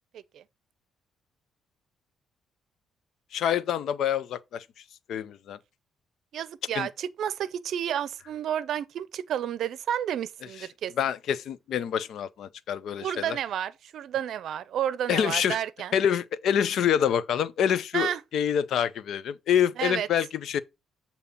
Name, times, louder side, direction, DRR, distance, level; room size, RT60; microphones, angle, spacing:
voice 1, 3.3-4.6 5.1-5.6 6.7-6.9 11.0-13.4 15.1-15.6 15.9-20.6, left 9 dB, 75° left, 0.5 m, -26 dB
voice 2, 6.3-10.9 13.0-16.0 17.9-18.2 19.8-20.1, right 10 dB, 70° right, 0.5 m, -31 dB
8.3 x 2.8 x 5.4 m
cardioid pair, 90°, 0 cm